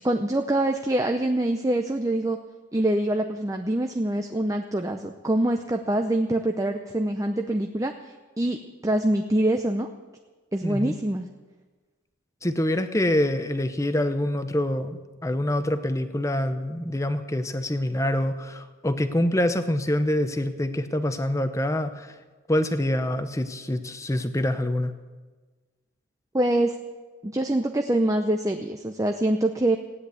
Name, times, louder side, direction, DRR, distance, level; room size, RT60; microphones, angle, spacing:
voice 1, 0.0-2.4 2.7-8.6 8.8-9.9 10.5-11.3 26.3-26.8 27.2-29.8, right 1 dB, 15° right, 5 dB, 0.6 m, -25 dB
voice 2, 10.6-10.9 12.4-22.2 22.5-24.9, left 1 dB, 15° left, 10 dB, 0.7 m, -26 dB
16.0 x 9.9 x 8.3 m, 1.3 s
head